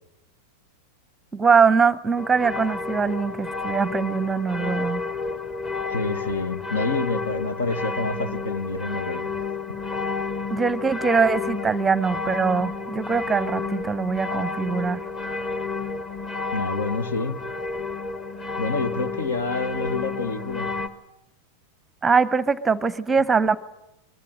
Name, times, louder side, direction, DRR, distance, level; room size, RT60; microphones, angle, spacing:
voice 1, 1.3-5.0 10.5-15.0 22.0-23.6, right 5 dB, 10° right, 18 dB, 0.9 m, -22 dB
sound 1, 2.2-20.9, left 4 dB, 25° left, 1.7 m, -31 dB
voice 2, 5.9-9.3 16.5-17.4 18.6-20.7, left 3 dB, 65° left, 14 dB, 1.7 m, -28 dB
23.5 x 23.0 x 7.6 m, 0.88 s
figure-of-eight pair, 90°, 0 cm